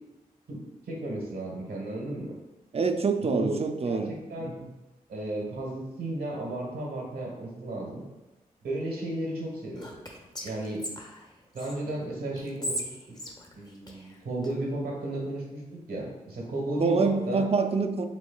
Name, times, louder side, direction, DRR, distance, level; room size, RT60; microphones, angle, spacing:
voice 1, 0.9-2.3 3.2-3.6 3.9-4.5 5.1-8.1 8.6-10.0 10.4-10.8 11.5-12.8 13.5-15.6 15.9-17.4, right 1 dB, 85° right, -2 dB, 1.3 m, -34 dB
voice 2, 2.7-4.7 16.8-18.1, right 4 dB, 40° right, 7 dB, 0.5 m, -26 dB
Whispering, 9.8-11.8 12.4-14.5, equal, 25° left, 1.0 m, -38 dB
6.1 x 3.5 x 2.3 m, 1.0 s
supercardioid pair, 40°, 16 cm